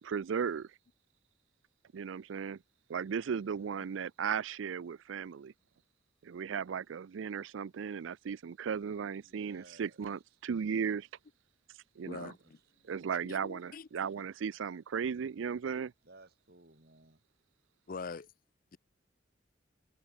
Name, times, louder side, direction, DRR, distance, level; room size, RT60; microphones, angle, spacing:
voice 1, 0.0-0.7 1.9-2.6 2.9-5.5 6.2-11.1 12.0-12.3 12.9-15.9, right 7 dB, 85° right, 0.4 m, -36 dB
voice 2, 9.2-10.1 12.4-12.5 16.0-17.2, right 2 dB, 55° right, 4.1 m, -58 dB
voice 3, 12.0-12.6 13.2-13.9 17.9-18.3, left 4 dB, 45° left, 0.5 m, -43 dB
head